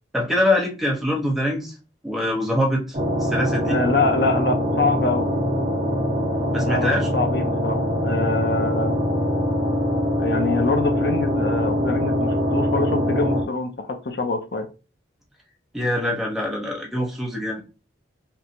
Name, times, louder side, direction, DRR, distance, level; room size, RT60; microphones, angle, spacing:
voice 1, 0.1-1.7 2.0-3.8 6.5-7.1 15.7-17.6, left 1 dB, ahead, -1 dB, 1.1 m, -24 dB
sound 1, 2.9-13.4, equal, 35° right, 1.3 m, -23 dB
voice 2, 3.6-5.3 6.6-9.0 10.2-14.7, left 3 dB, 60° left, 5 dB, 0.7 m, -25 dB
5.3 x 2.9 x 2.9 m, 0.32 s
head